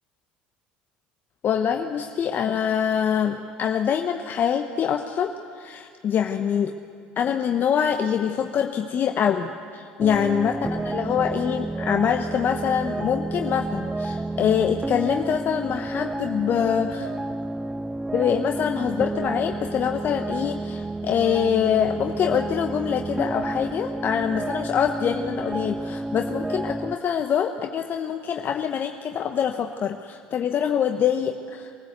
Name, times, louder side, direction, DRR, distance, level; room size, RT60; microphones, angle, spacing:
voice 1, 1.4-6.7 7.2-17.1 18.1-31.8, left 8 dB, 45° left, 5 dB, 1.0 m, -25 dB
sound 1, 10.0-27.0, right 2 dB, 10° right, 0.5 m, -30 dB
23.5 x 13.5 x 8.1 m, 2.3 s
hypercardioid pair, 75°, 5 cm